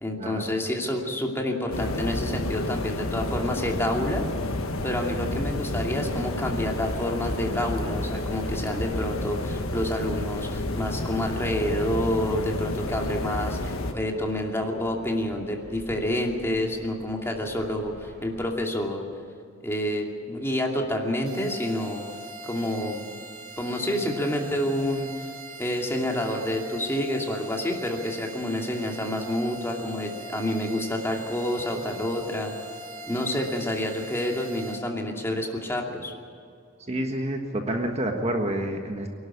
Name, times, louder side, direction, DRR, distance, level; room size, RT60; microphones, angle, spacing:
voice 1, 0.0-4.3 4.8-19.0 19.6-22.0 22.4-23.0 23.6-25.1 25.6-32.6 33.1-36.1, left 1 dB, 10° left, 0 dB, 2.5 m, -28 dB
sound 1, 1.7-13.9, left 1 dB, 75° left, 1.6 m, -30 dB
sound 2, 5.9-18.5, equal, 50° right, 4.7 m, -48 dB
sound 3, 21.3-34.8, right 2 dB, 70° right, 3.5 m, -42 dB
voice 2, 36.9-39.1, right 1 dB, 30° right, 3 dB, 1.5 m, -28 dB
24.0 x 12.0 x 9.9 m, 2.4 s
head